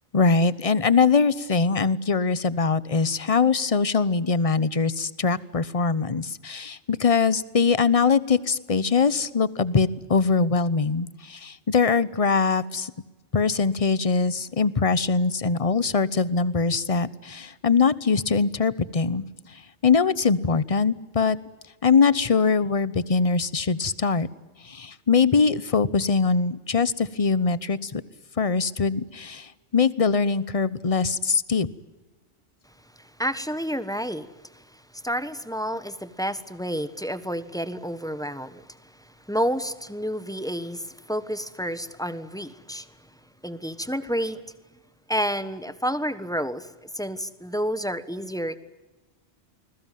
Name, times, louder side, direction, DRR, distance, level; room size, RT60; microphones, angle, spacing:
voice 1, 0.1-12.9 13.3-21.4 21.8-24.3 24.6-28.0 28.4-31.7, left 5 dB, 35° left, 17 dB, 1.0 m, -22 dB
voice 2, 33.0-34.3 34.5-34.6 35.0-38.6 39.3-42.9 43.4-44.4 45.1-46.7 46.9-48.6, equal, 5° left, 12 dB, 1.3 m, -29 dB
29.0 x 21.5 x 9.2 m, 1.1 s
omnidirectional pair, 1.1 m